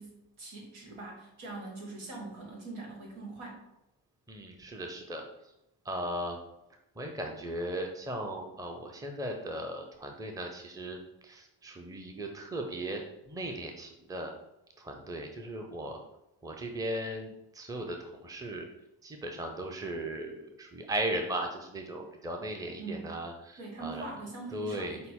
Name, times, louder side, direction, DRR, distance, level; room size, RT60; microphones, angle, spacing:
voice 1, 0.0-3.7 22.8-23.1 23.6-25.1, right 3 dB, 70° right, -1 dB, 1.6 m, -42 dB
voice 2, 4.3-5.2 5.8-6.4 7.0-14.3 14.8-16.0 16.4-18.7 19.0-24.1 24.5-25.1, right 1 dB, 5° right, 2 dB, 0.7 m, -37 dB
5.7 x 2.2 x 3.7 m, 0.87 s
hypercardioid pair, 45°, 50 cm